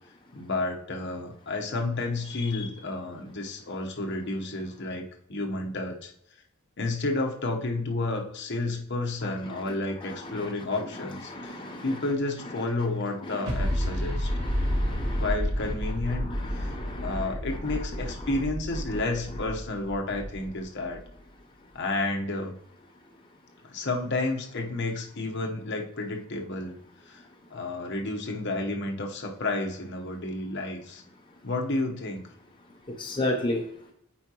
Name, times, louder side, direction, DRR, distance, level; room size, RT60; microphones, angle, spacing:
voice 1, 0.3-5.0 5.3-6.1 6.8-11.5 11.8-14.3 15.1-16.3 16.5-16.7 17.0-21.0 21.7-22.5 23.6-26.8 27.0-27.2 27.5-31.0 31.4-32.2, left 2 dB, 55° left, 2 dB, 1.0 m, -31 dB
voice 2, 11.3-11.8 13.8-13.9 14.3-15.2 16.3-17.2 33.0-33.6, left 1 dB, 20° left, 0 dB, 0.6 m, -32 dB
sound 1, 13.4-21.0, equal, 90° right, 1.2 m, -30 dB
8.7 x 4.7 x 2.9 m, 0.73 s
head